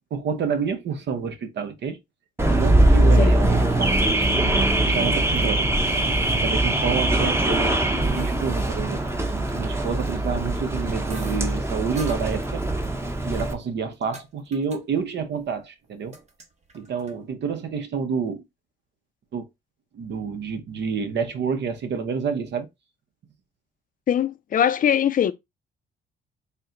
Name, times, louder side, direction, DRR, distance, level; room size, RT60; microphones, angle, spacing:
voice 1, 0.1-2.0 2.5-5.7 6.4-9.0 9.5-12.7 13.2-16.1 16.7-18.4 19.3-19.5 19.9-22.7, right 6 dB, 60° right, 0.8 m, -29 dB
Car / Alarm, 2.4-13.5, right 1 dB, 15° right, 0.8 m, -22 dB
sound 1, 11.1-11.5 12.0-12.2 13.2-14.3 14.5-14.8 15.1-15.5 15.8-17.1, right 1 dB, 35° right, 1.0 m, -42 dB
voice 2, 24.1-25.3, left 9 dB, 45° left, 0.5 m, -21 dB
4.2 x 2.2 x 3.8 m
cardioid pair, 90°, 20 cm